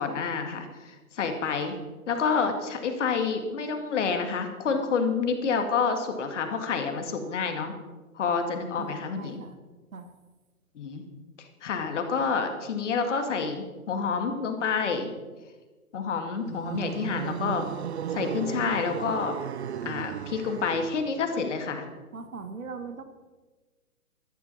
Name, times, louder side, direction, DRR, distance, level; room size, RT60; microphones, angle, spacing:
voice 1, 0.0-1.8 2.1-7.8 8.2-9.4 10.8-11.0 11.4-15.1 15.9-17.7 18.1-19.4 19.8-21.9, left 5 dB, 55° left, 6 dB, 2.2 m, -28 dB
voice 2, 8.8-9.6 9.9-10.1 21.3-21.4 22.1-23.0, right 5 dB, 65° right, 8 dB, 1.6 m, -40 dB
sound 1, 16.4-21.1, right 9 dB, 50° right, 0.7 m, -35 dB
14.0 x 13.0 x 4.2 m, 1.3 s
figure-of-eight pair, 125°, 44 cm